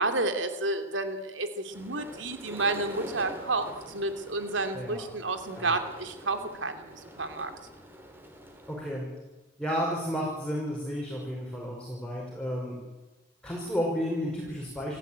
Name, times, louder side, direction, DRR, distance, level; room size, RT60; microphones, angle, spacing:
voice 1, 0.0-7.5, right 2 dB, 70° right, 7 dB, 2.9 m, -31 dB
sound 1, 1.7-8.8, equal, 10° right, 3.7 m, -45 dB
voice 2, 8.7-9.1 9.6-12.8 13.4-15.0, equal, 5° left, -3 dB, 5.6 m, -32 dB
29.5 x 14.5 x 9.1 m, 1.1 s
head